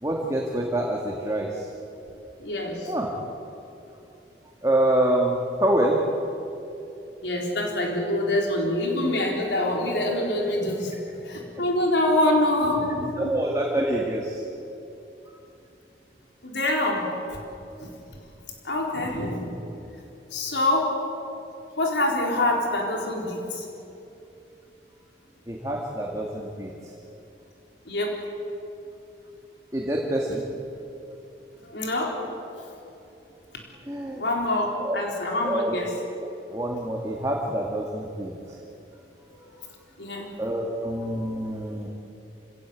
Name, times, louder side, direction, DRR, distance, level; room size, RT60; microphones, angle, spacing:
voice 1, 0.0-1.7 2.9-3.1 4.6-6.0 13.2-14.4 25.5-26.7 29.7-30.4 33.9-34.2 34.8-35.0 35.4-35.8 36.2-38.6 40.4-41.9, right 1 dB, 20° right, -2 dB, 2.1 m, -26 dB
voice 2, 2.4-2.9 7.2-10.9 11.2-13.3 16.4-17.1 17.8-17.9 18.6-19.5 20.3-21.0 21.8-23.7 27.9-28.2 31.7-32.2 34.2-35.9 39.3-39.4 40.0-40.3, left 1 dB, 85° left, 0 dB, 4.2 m, -25 dB
27.0 x 17.5 x 8.4 m, 2.8 s
head